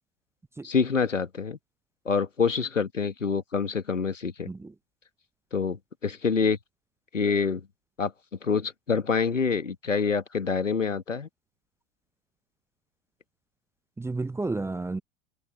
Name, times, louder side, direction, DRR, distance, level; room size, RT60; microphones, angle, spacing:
voice 1, 0.6-1.6 2.1-4.5 5.5-6.6 7.1-7.6 8.0-8.1 8.4-11.3, left 5 dB, 85° left, 1.9 m, -26 dB
voice 2, 14.0-15.0, right 3 dB, 5° right, 0.7 m, -31 dB
figure-of-eight pair, 80°, 37 cm